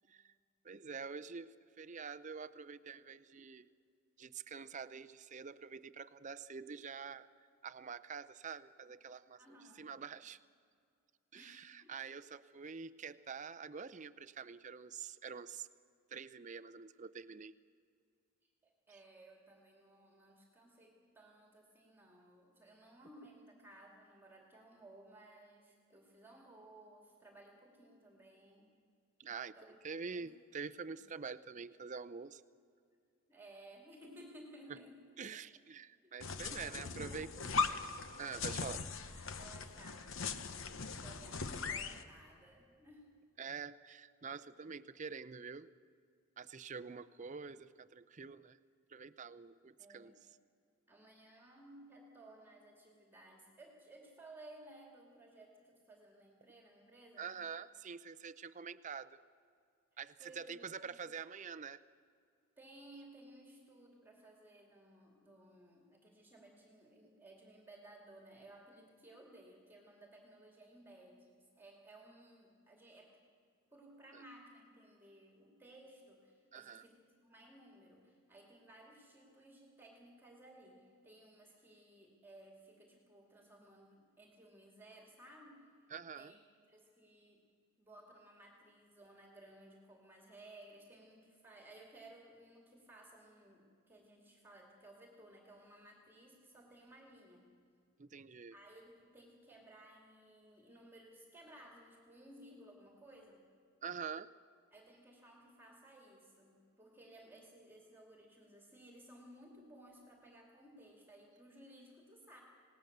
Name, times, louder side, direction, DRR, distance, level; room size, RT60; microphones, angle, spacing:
voice 1, 0.6-3.7 4.2-7.3 7.6-10.4 11.3-15.7 16.1-17.5 29.2-29.5 29.8-32.4 34.7-34.8 35.2-37.3 38.2-38.8 43.4-45.7 46.4-48.6 48.9-50.1 57.2-59.2 60.0-61.8 74.1-74.2 76.5-76.8 85.9-86.3 98.0-98.5 103.8-104.3, right 5 dB, 35° right, 12 dB, 0.5 m, -46 dB
voice 2, 9.4-9.9 11.3-11.9 18.4-28.7 29.6-29.7 30.1-30.3 30.8-31.0 33.3-35.4 36.0-37.8 38.3-43.1 49.8-50.2 50.9-57.3 60.2-60.9 62.6-73.2 73.7-85.7 86.2-86.4 86.7-87.4 87.8-97.5 98.5-103.4 104.7-112.4, right 1 dB, 10° right, 0 dB, 2.4 m, -58 dB
sound 1, 36.2-42.0, left 4 dB, 60° left, 1.0 m, -40 dB
27.5 x 18.5 x 6.7 m, 2.3 s
head